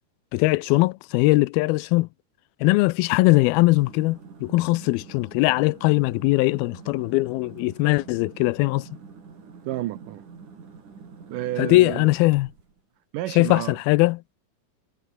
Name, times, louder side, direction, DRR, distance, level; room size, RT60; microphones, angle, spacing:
voice 1, 0.3-2.1 2.6-8.9 11.6-12.5 13.4-14.2, left 21 dB, 85° left, 2.4 m, -20 dB
sound 1, 3.6-12.8, right 5 dB, 55° right, 5.7 m, -46 dB
voice 2, 9.7-10.3 11.3-12.1 13.1-13.8, right 15 dB, 75° right, 2.1 m, -30 dB
omnidirectional pair, 4.4 m